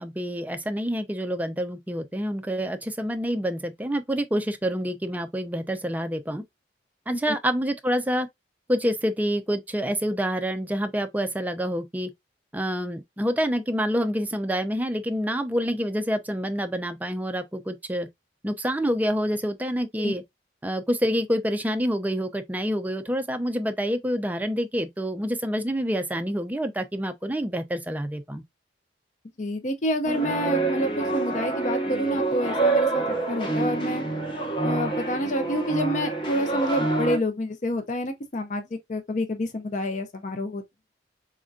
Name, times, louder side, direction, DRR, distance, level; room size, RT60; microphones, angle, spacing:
voice 1, 0.0-6.4 7.1-8.3 8.7-12.1 12.5-18.1 18.4-20.2 20.6-28.4, equal, 10° right, 0.4 m, -27 dB
voice 2, 29.4-34.0 34.6-40.6, equal, 45° left, 0.5 m, -28 dB
sound 1, 30.0-37.2, right 3 dB, 30° left, 1.1 m, -27 dB
4.2 x 2.5 x 2.3 m
head